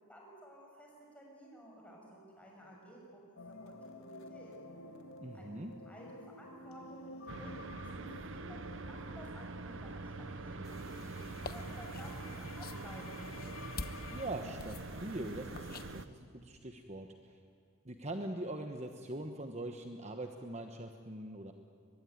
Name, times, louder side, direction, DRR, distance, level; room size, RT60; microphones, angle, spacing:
voice 1, 0.1-0.9 1.1-4.5 5.3-5.6 5.8-8.6 8.9-13.2, equal, 5° left, -2 dB, 6.7 m, -54 dB
sound 1, 3.4-14.3, left 2 dB, 80° left, 2.0 m, -52 dB
voice 2, 5.2-5.7 14.1-17.4 17.8-21.5, right 1 dB, 30° right, 5 dB, 1.2 m, -42 dB
sound 2, 7.3-16.0, right 3 dB, 60° right, 0.9 m, -44 dB
sound 3, 10.6-16.1, left 3 dB, 45° left, 1.1 m, -49 dB
23.5 x 21.5 x 9.4 m, 2.5 s
head